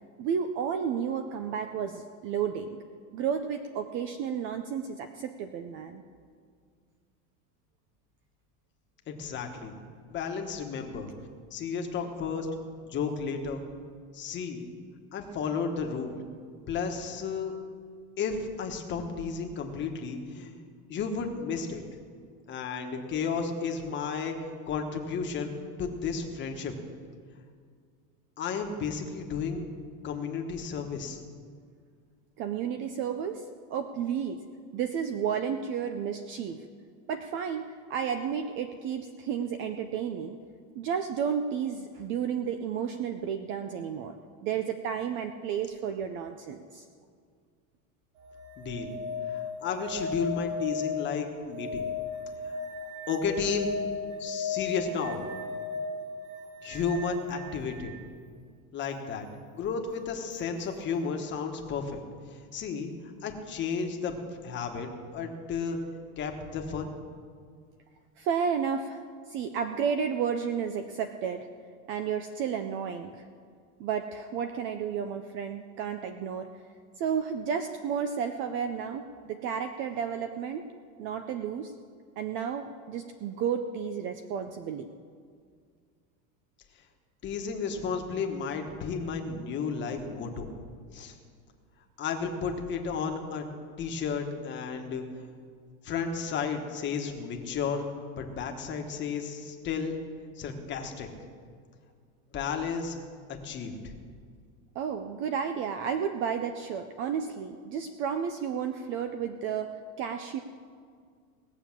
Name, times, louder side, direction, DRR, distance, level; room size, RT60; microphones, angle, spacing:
voice 1, 0.2-2.8 3.1-6.0 32.4-33.4 33.7-34.4 34.7-36.7 37.1-40.4 40.8-44.2 44.4-46.9 68.2-69.0 69.3-71.5 71.9-73.2 73.8-76.5 77.0-80.6 81.0-81.7 82.2-84.9 104.8-110.4, right 7 dB, 30° right, 8 dB, 0.4 m, -32 dB
voice 2, 9.1-9.8 10.1-11.1 11.5-12.5 12.8-13.6 14.1-14.7 15.1-16.1 16.7-17.5 18.2-20.6 20.9-21.8 22.5-24.3 24.7-25.5 25.8-26.7 28.4-29.7 30.0-31.2 48.6-48.9 49.3-51.8 53.1-53.7 54.2-55.2 56.6-57.9 58.7-59.3 59.5-62.0 62.5-62.9 63.2-64.2 64.4-65.8 66.2-66.9 87.2-90.5 90.9-91.1 92.0-93.4 93.8-95.0 95.8-97.8 98.2-100.0 100.4-101.1 102.3-103.0 103.4-103.7, left 5 dB, 25° left, 3 dB, 1.3 m, -33 dB
sound 1, 48.2-58.0 60.3-60.4, left 4 dB, 90° right, 4.6 m, -36 dB
18.5 x 7.0 x 7.3 m, 2.1 s
supercardioid pair, 160°, 43 cm